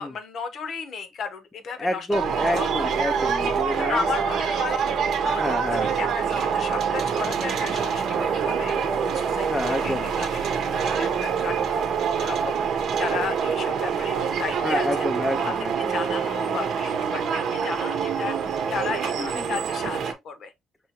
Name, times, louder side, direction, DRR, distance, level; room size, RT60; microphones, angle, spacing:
voice 1, 0.0-2.1 2.5-2.7 3.5-4.9 5.2-9.5 9.8-15.1 15.4-20.5, left 5 dB, 50° left, 0.8 m, -34 dB
voice 2, 1.8-4.1 5.4-5.9 9.4-10.1 14.6-16.0 19.2-19.6, left 1 dB, 10° left, 0.5 m, -29 dB
sound 1, 2.1-20.1, right 6 dB, 60° right, 0.8 m, -26 dB
5.6 x 2.9 x 2.8 m
cardioid pair, 160°, 0 cm